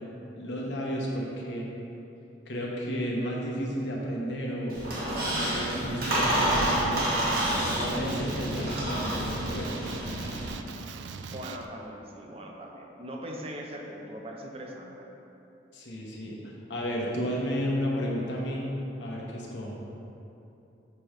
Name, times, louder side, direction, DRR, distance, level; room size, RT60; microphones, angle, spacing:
voice 1, 0.4-1.7 2.5-4.9 5.3-7.0 7.6-9.8 15.7-16.4 16.7-18.7 19.0-19.8, equal, 85° left, -3 dB, 1.1 m, -32 dB
Squeak, 4.7-10.5, right 1 dB, 55° right, 1.3 m, -29 dB
Male speech man speaking, 6.0-11.7, right 5 dB, 80° right, 0.3 m, -41 dB
voice 2, 11.2-15.1, equal, 35° right, 0 dB, 0.6 m, -41 dB
6.8 x 3.1 x 5.0 m, 2.9 s
head